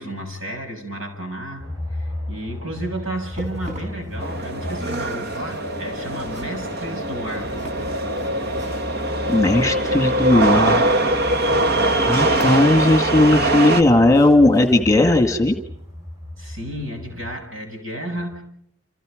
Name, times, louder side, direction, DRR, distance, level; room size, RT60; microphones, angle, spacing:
voice 1, 0.0-1.7 1.9-7.5 16.4-18.4, right 1 dB, 70° right, 4 dB, 7.1 m, -32 dB
sound 1, 1.6-17.3, left 1 dB, 20° right, 4.8 m, -36 dB
sound 2, 3.2-9.9 11.3-13.1 13.4-15.4 15.8-15.9 16.5-16.6, equal, 35° right, 5.8 m, -43 dB
sound 3, 4.2-13.8, right 1 dB, 50° right, 1.7 m, -22 dB
voice 2, 9.3-10.8 12.1-15.6, left 2 dB, 15° left, 6 dB, 2.0 m, -16 dB
29.5 x 28.5 x 5.2 m, 0.70 s
head